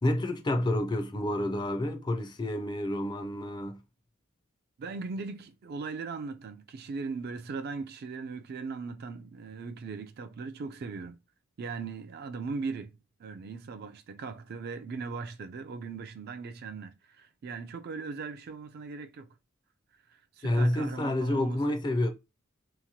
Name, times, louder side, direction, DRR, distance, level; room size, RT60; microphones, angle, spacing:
voice 1, 0.0-3.8 20.4-22.1, left 1 dB, 20° left, 0.4 m, -29 dB
voice 2, 4.8-11.2 11.6-19.4 20.1-21.6, right 4 dB, 50° right, 0.3 m, -39 dB
2.9 x 2.1 x 2.7 m
head